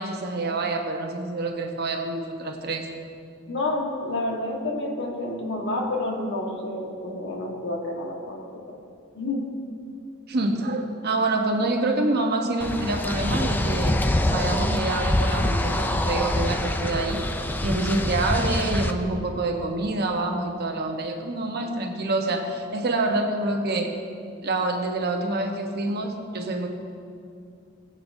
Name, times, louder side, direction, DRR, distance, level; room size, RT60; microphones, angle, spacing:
voice 1, 0.0-2.9 10.3-14.0 14.3-17.3 17.6-24.0 24.4-26.7, right 2 dB, 50° right, 3 dB, 1.0 m, -27 dB
voice 2, 3.5-8.8 9.1-9.5, left 2 dB, 60° left, 0 dB, 1.5 m, -29 dB
sound 1, 12.6-18.9, left 1 dB, 10° left, 0.4 m, -25 dB
20.0 x 7.8 x 2.7 m, 2.4 s
head